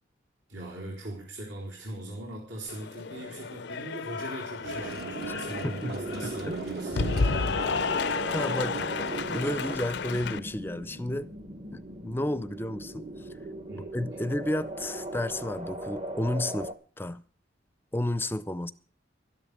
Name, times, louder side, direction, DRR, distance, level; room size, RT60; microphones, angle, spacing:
voice 1, 0.5-7.5 8.6-8.9 13.7-13.9, right 1 dB, 75° right, 4.2 m, -40 dB
Cheering / Applause, 2.7-10.4, left 5 dB, 60° left, 0.6 m, -32 dB
sound 1, 4.6-9.8, right 4 dB, 55° right, 1.3 m, -38 dB
voice 2, 5.3-6.6 8.3-8.8 9.3-11.3 11.7-13.3 13.9-17.2 17.9-18.7, left 1 dB, 10° left, 0.6 m, -32 dB
sound 2, 5.9-16.7, right 1 dB, 35° right, 1.1 m, -39 dB
13.0 x 11.0 x 6.8 m
head